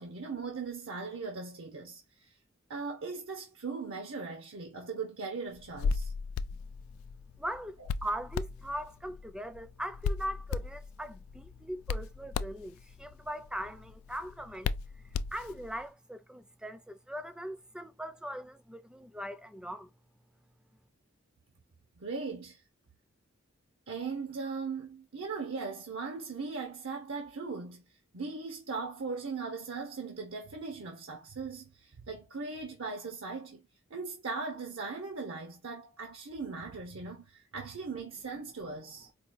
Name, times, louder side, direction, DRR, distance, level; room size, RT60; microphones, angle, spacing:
voice 1, 0.0-2.4 2.7-6.1 7.8-7.9 22.0-22.6 23.9-27.8 28.1-33.6 33.9-39.1, right 4 dB, 70° right, 0.8 m, -39 dB
Hands, 5.6-15.8, left 5 dB, 90° left, 0.3 m, -37 dB
voice 2, 7.4-14.7 15.3-19.9, equal, 5° right, 0.4 m, -40 dB
4.6 x 2.3 x 2.5 m
head